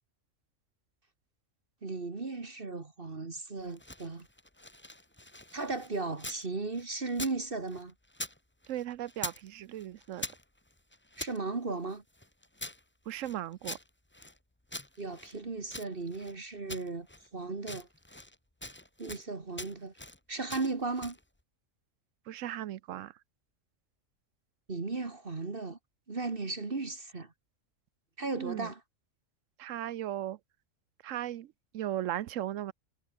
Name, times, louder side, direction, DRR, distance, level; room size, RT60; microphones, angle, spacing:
voice 1, 1.8-4.3 5.5-7.9 11.2-12.0 15.0-17.1 17.3-17.9 19.0-19.9 20.3-21.2 24.7-25.8 26.1-27.3 28.2-28.8, right 3 dB, 45° right, 2.1 m, -36 dB
sound 1, 3.6-6.5 6.7-8.4 8.6-9.5 9.7-11.4 11.9-14.4 14.7-16.4 16.7-17.3 17.6-18.4 18.6-19.3 19.6-20.2 20.5-21.2, left 1 dB, 10° left, 1.3 m, -44 dB
voice 2, 8.7-10.2 13.1-13.8 22.3-23.1 28.3-28.7 29.6-30.4 31.0-32.7, right 12 dB, 80° right, 1.0 m, -37 dB
omnidirectional pair, 1.3 m